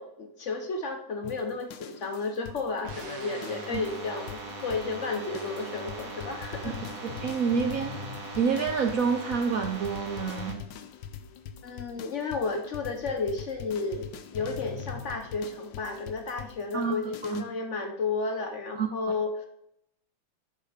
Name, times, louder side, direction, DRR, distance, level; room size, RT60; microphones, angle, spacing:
voice 1, 0.0-6.8 11.6-19.5, left 4 dB, 55° left, 5 dB, 0.8 m, -32 dB
sound 1, 1.2-17.4, left 8 dB, 75° left, 1.4 m, -43 dB
sound 2, 2.8-10.5, right 2 dB, 50° right, 1.6 m, -40 dB
voice 2, 7.2-8.0 8.4-10.6 16.7-17.0 17.2-17.4 18.8-18.9, right 6 dB, 65° right, 4 dB, 0.8 m, -28 dB
10.5 x 4.1 x 5.0 m, 0.75 s
omnidirectional pair, 2.1 m